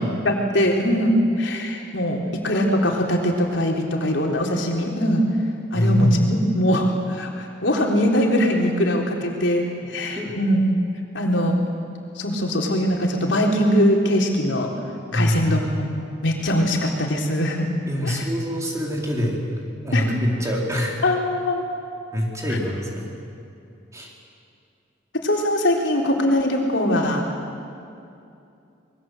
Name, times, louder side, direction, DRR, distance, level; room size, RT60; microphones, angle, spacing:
voice 1, 0.2-5.2 5.7-10.6 11.1-11.6 12.2-14.7 15.1-15.9 16.2-17.7 18.0-18.3 19.9-20.2 21.0-21.6 22.5-22.6 25.2-27.3, equal, 70° left, 0 dB, 3.7 m, -21 dB
voice 2, 5.7-6.2 10.1-10.3 15.1-15.7 17.8-20.9 22.1-23.1 23.9-24.1, equal, 15° right, -2 dB, 4.2 m, -24 dB
26.0 x 21.5 x 8.0 m, 2.6 s
head